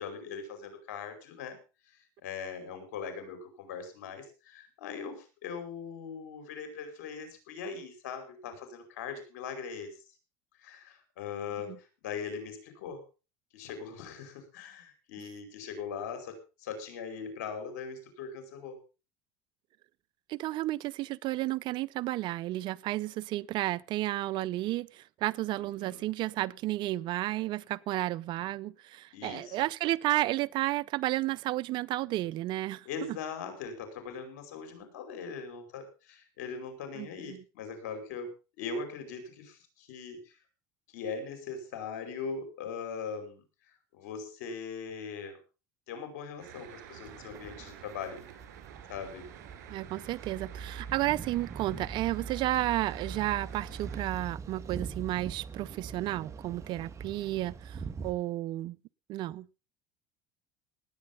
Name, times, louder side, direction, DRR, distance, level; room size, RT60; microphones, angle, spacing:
voice 1, 0.0-1.6 1.9-10.0 10.6-13.0 13.5-18.8 25.5-26.1 29.1-29.6 32.8-38.3 38.6-40.4 40.9-43.4 43.9-45.4 45.9-48.2 48.9-49.3 50.7-50.9, left 5 dB, 85° left, 5.0 m, -40 dB
voice 2, 20.3-24.9 25.2-33.2 37.0-37.1 49.7-57.7 58.0-58.8 59.1-59.4, right 16 dB, 55° right, 0.6 m, -32 dB
Traffic noise roadway noise, 46.4-54.0, right 10 dB, 85° right, 3.3 m, -50 dB
sound 1, 47.1-58.1, right 5 dB, 30° right, 1.9 m, -43 dB
18.5 x 8.6 x 5.4 m
supercardioid pair, 105°, 9 cm